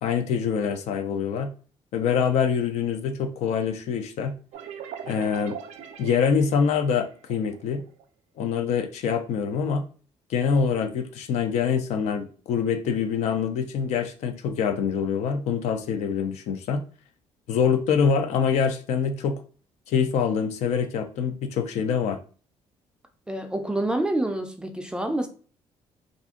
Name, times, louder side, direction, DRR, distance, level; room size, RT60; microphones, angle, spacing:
voice 1, 0.0-1.5 1.9-4.3 5.0-5.6 6.0-7.8 8.4-9.8 10.3-16.8 17.5-19.4 19.9-22.2, left 6 dB, 70° left, 0.5 m, -25 dB
sound 1, 4.5-8.0, right 8 dB, 90° right, 0.4 m, -41 dB
voice 2, 23.3-25.3, right 1 dB, 5° right, 0.4 m, -27 dB
2.5 x 2.4 x 3.6 m
cardioid pair, 135°, 12 cm